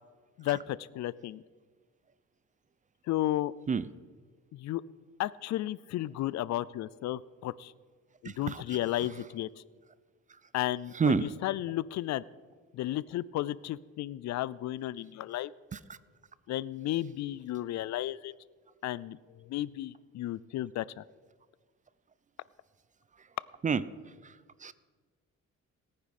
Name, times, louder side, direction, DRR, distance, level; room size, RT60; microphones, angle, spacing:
voice 1, 0.4-1.4 3.1-3.5 4.5-4.8 5.2-7.7 8.2-9.5 10.5-12.2 12.7-15.5 16.5-18.3 18.8-19.2 19.4-21.0, left 14 dB, 65° left, 20 dB, 0.5 m, -33 dB
voice 2, 8.3-8.6 11.0-11.2 23.6-23.8 24.6-24.7, right 5 dB, 25° right, 17 dB, 0.5 m, -27 dB
17.5 x 9.7 x 4.2 m, 1.5 s
cardioid pair, 90°, 30 cm